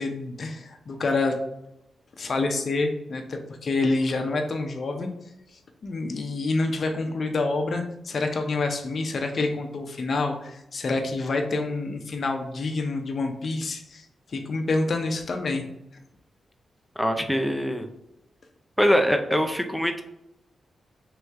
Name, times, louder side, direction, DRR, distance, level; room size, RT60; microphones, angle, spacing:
voice 1, 0.0-1.3 2.2-5.1 5.8-15.6, left 3 dB, 55° left, 4 dB, 0.6 m, -27 dB
voice 2, 17.0-17.9 18.8-20.0, equal, ahead, 5 dB, 0.5 m, -23 dB
3.2 x 3.1 x 3.6 m, 0.87 s
cardioid pair, 70°, 0 cm